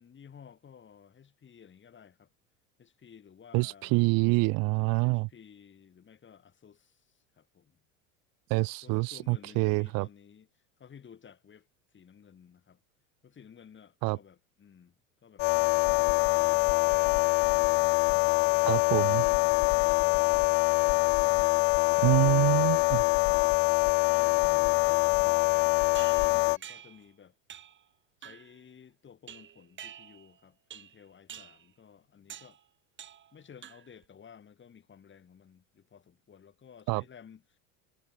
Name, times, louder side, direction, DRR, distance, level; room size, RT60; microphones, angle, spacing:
voice 1, 0.0-2.3 2.8-4.1 4.8-7.8 8.8-11.7 11.9-12.8 13.2-17.1 18.2-20.6 24.1-27.4 28.2-32.6 33.3-37.6, left 7 dB, 30° left, 6.1 m, -55 dB
voice 2, 3.5-5.3 8.5-10.1 14.0-14.2 18.7-19.2 22.0-23.0 36.9-37.0, right 27 dB, 55° right, 1.1 m, -26 dB
sound 1, 15.4-26.6, left 33 dB, 65° left, 0.8 m, -24 dB
sound 2, 25.9-27.1 27.5-27.8 28.2-28.6 29.3-30.3 30.7-31.0 31.3-31.7 32.3-32.6 33.0-33.3 33.6-34.0, right 9 dB, 30° right, 1.4 m, -47 dB
hypercardioid pair, 100°, 41 cm